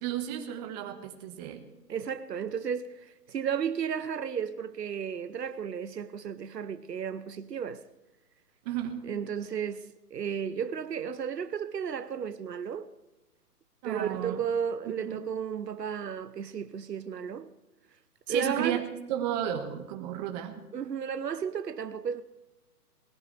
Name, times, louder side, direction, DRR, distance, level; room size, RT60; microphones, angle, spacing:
voice 1, 0.0-1.6 8.6-9.0 13.8-14.4 14.9-15.2 18.3-18.8 19.1-20.6, right 10 dB, 25° right, 1.5 m, -33 dB
voice 2, 1.9-7.8 9.0-12.9 13.8-17.5 18.3-18.9 20.7-22.2, right 7 dB, 80° right, 0.9 m, -33 dB
20.5 x 15.0 x 3.4 m
figure-of-eight pair, 135°, 48 cm